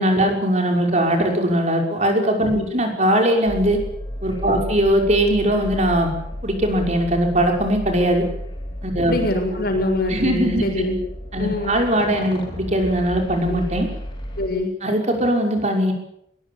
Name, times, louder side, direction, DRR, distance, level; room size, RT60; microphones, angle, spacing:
voice 1, 0.0-3.8 4.2-6.1 6.4-8.2 8.8-9.1 10.1-10.6 11.3-13.9 14.8-15.9, right 1 dB, 35° right, 3 dB, 5.9 m, -20 dB
sound 1, 3.5-14.5, equal, 25° left, 7.3 m, -33 dB
voice 2, 9.0-11.0 11.4-11.7 13.5-13.6 14.4-14.7, left 1 dB, 55° left, 3 dB, 6.7 m, -24 dB
22.5 x 21.0 x 8.6 m, 0.74 s
head